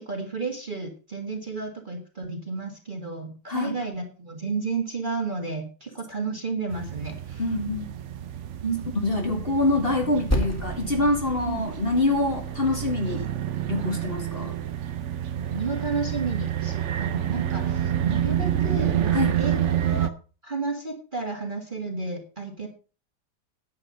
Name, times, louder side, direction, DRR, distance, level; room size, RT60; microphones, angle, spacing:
voice 1, 0.0-7.4 8.6-8.9 11.4-11.7 15.4-20.1 20.4-22.7, right 4 dB, 25° right, 3 dB, 1.6 m, -32 dB
sound 1, 6.7-20.1, right 10 dB, 65° right, 0.7 m, -29 dB
voice 2, 7.4-7.9 9.0-13.3 13.7-14.6 19.1-19.4, left 2 dB, 30° left, 3 dB, 1.9 m, -25 dB
Percussion, 10.3-15.1, equal, 10° left, 1.5 m, -33 dB
9.9 x 7.7 x 5.3 m, 0.37 s
omnidirectional pair, 2.0 m